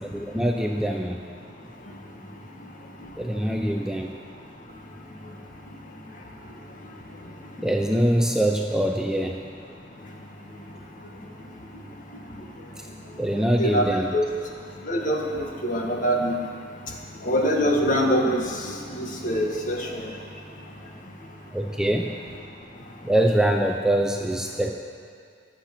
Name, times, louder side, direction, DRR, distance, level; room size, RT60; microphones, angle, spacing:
voice 1, 0.0-1.2 3.2-4.1 7.6-9.4 13.2-14.1 21.5-22.1 23.0-24.7, right 1 dB, 5° right, 2 dB, 0.6 m, -23 dB
voice 2, 13.6-14.2 14.8-16.4 17.2-20.1, equal, 45° left, 0 dB, 1.9 m, -24 dB
22.0 x 8.2 x 6.1 m, 2.3 s
head